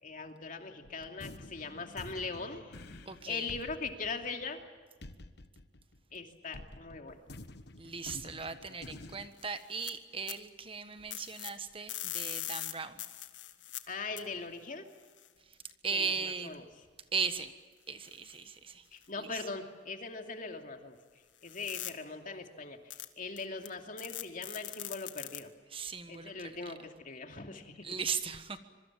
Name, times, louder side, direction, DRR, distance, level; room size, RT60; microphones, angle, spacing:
voice 1, 0.0-4.6 6.1-7.2 13.9-14.9 15.9-16.6 18.9-21.0 21.4-25.5 26.1-28.0, left 4 dB, 45° left, 4 dB, 2.7 m, -41 dB
sound 1, 0.8-6.2 6.5-9.3, left 2 dB, 65° left, 1.3 m, -49 dB
voice 2, 3.0-3.5 7.8-13.0 15.4-15.6 15.8-16.6 17.1-17.5 17.9-18.9 19.2-19.4 25.7-26.7 27.8-28.6, right 5 dB, 30° right, 10 dB, 1.4 m, -38 dB
sound 2, 9.4-9.9 10.3-10.4 11.1-11.5 11.9-13.8 14.2-14.3 15.2-15.3 18.1-18.3 19.0-19.1 21.5-21.9 22.9-23.1 23.4-23.7 24.0-25.4, left 14 dB, 85° left, 1.7 m, -41 dB
25.5 x 24.0 x 7.4 m, 1.4 s
head